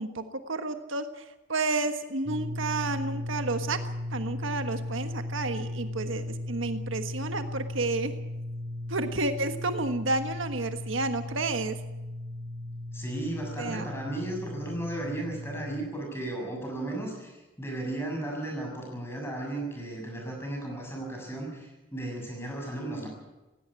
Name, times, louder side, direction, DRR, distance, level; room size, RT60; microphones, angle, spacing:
voice 1, 0.0-3.8 4.1-8.1 8.9-11.7 13.6-13.9, right 2 dB, 70° right, 8 dB, 1.4 m, -31 dB
sound 1, 2.3-15.9, left 1 dB, 30° right, 1.1 m, -36 dB
voice 2, 12.9-23.1, right 1 dB, 10° left, 1 dB, 6.9 m, -35 dB
17.5 x 17.0 x 9.7 m, 1.1 s
head